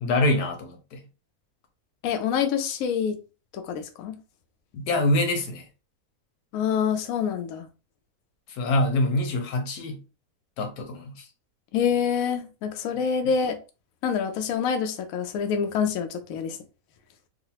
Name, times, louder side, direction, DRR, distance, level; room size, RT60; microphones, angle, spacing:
voice 1, 0.0-1.0 4.7-5.6 8.5-10.0 10.6-11.2, left 1 dB, 90° left, 1.3 m, -25 dB
voice 2, 2.0-3.2 3.5-4.1 6.5-7.7 11.7-13.6 14.0-16.6, left 7 dB, 70° left, 0.9 m, -26 dB
3.8 x 2.0 x 2.8 m
omnidirectional pair, 1.6 m